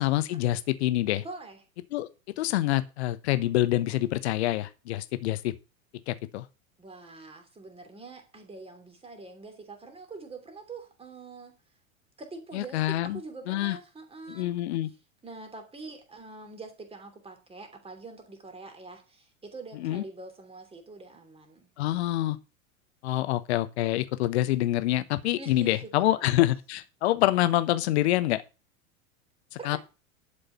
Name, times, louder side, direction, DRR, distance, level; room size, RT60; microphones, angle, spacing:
voice 1, 0.0-1.2 1.9-2.1 2.4-5.6 6.1-6.5 12.5-13.2 13.5-13.8 14.3-14.9 19.8-20.0 21.8-22.4 23.0-28.4 29.6-29.8, left 15 dB, 50° left, 1.1 m, -26 dB
voice 2, 1.2-1.6 6.8-11.6 12.2-14.6 15.2-21.7 25.4-26.3 29.6-29.8, right 3 dB, 15° right, 3.0 m, -44 dB
11.5 x 5.2 x 6.8 m
figure-of-eight pair, 85°, 41 cm